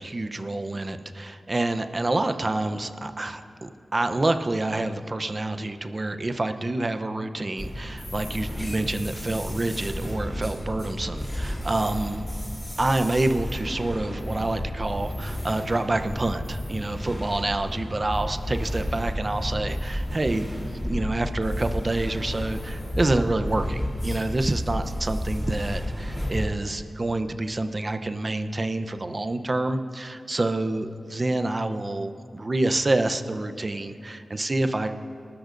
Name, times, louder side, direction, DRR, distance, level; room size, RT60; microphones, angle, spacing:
voice 1, 0.0-12.2 12.8-20.5 20.8-35.0, right 2 dB, 40° right, 8 dB, 0.7 m, -27 dB
sound 1, 7.6-26.5, equal, 10° left, 3.4 m, -32 dB
28.0 x 13.0 x 2.6 m, 2.5 s
cardioid pair, 60°, 0 cm